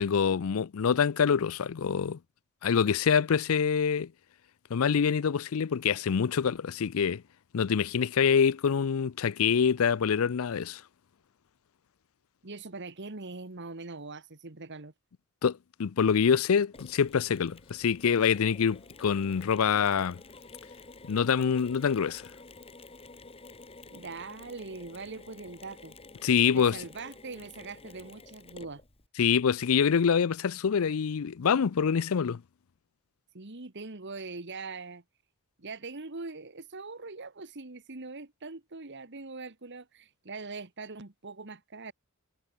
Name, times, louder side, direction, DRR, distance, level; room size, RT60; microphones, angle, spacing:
voice 1, 0.0-2.2 2.6-4.1 4.7-7.2 7.5-10.8 15.4-20.2 21.1-22.2 26.2-26.8 29.2-32.4, left 7 dB, 65° left, 0.5 m, -25 dB
voice 2, 12.4-14.9 23.9-25.9 26.5-28.8 33.3-35.0 35.6-41.9, right 3 dB, 50° right, 1.6 m, -42 dB
Mechanisms, 16.7-29.1, left 3 dB, 25° left, 1.7 m, -51 dB
head